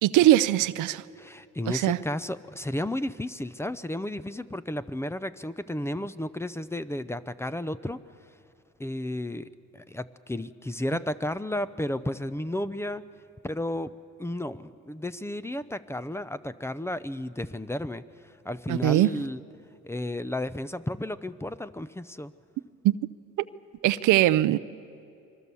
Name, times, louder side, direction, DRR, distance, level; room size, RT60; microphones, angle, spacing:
voice 1, 0.0-1.0 1.7-2.0 18.7-19.1 22.8-23.0 23.8-24.6, right 14 dB, 85° right, 0.6 m, -21 dB
voice 2, 1.1-8.0 8.8-13.0 13.4-13.9 14.2-19.4 19.8-22.3, left 1 dB, 10° left, 0.6 m, -33 dB
25.5 x 22.5 x 7.0 m
cardioid pair, 90°, 30 cm